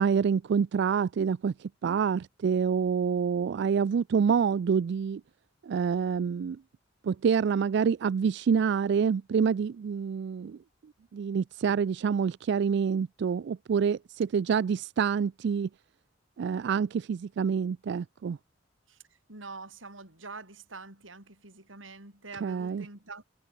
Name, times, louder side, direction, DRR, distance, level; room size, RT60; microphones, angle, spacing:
voice 1, 0.0-5.2 5.6-6.6 7.0-10.6 11.1-15.7 16.4-18.4 22.4-22.8, right 6 dB, 60° right, 0.3 m, -27 dB
voice 2, 18.9-23.2, right 3 dB, 90° right, 6.1 m, -45 dB
head